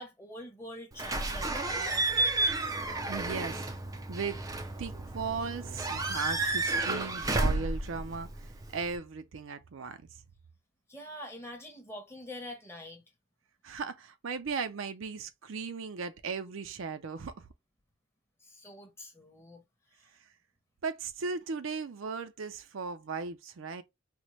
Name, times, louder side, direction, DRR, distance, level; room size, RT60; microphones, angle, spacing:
voice 1, 0.0-2.6 6.9-7.1 10.9-13.0 18.4-19.6 19.9-20.1, left 1 dB, 10° left, 0.8 m, -45 dB
Slam / Squeak / Alarm, 1.0-9.0, right 2 dB, 15° right, 0.4 m, -31 dB
voice 2, 3.1-3.6 4.1-4.4 4.8-8.3 8.7-10.0 13.6-17.5 20.8-23.8, right 5 dB, 75° right, 0.5 m, -37 dB
4.2 x 2.1 x 3.0 m
head